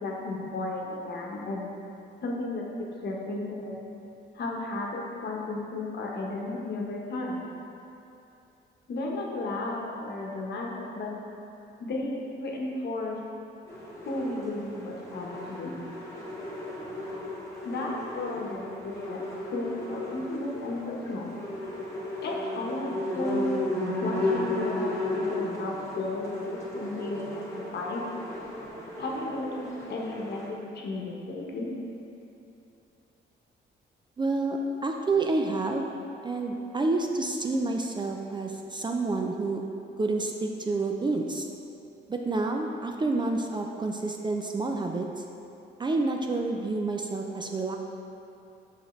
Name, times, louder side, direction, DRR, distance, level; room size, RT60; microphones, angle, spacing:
voice 1, 0.0-1.6 2.2-3.8 4.3-7.4 8.9-11.1 11.8-13.2 14.0-15.7 17.6-19.2 19.5-21.3 22.2-23.6 24.0-28.0 29.0-31.7, left 2 dB, 60° left, -2 dB, 1.0 m, -34 dB
sound 1, 13.7-30.5, left 1 dB, 15° left, 1.5 m, -35 dB
voice 2, 34.2-35.9 36.2-39.6 40.0-41.5 42.1-45.2 45.8-47.8, right 3 dB, 25° right, 2 dB, 0.4 m, -29 dB
5.8 x 5.4 x 3.2 m, 2.8 s
cardioid pair, 90°, 20 cm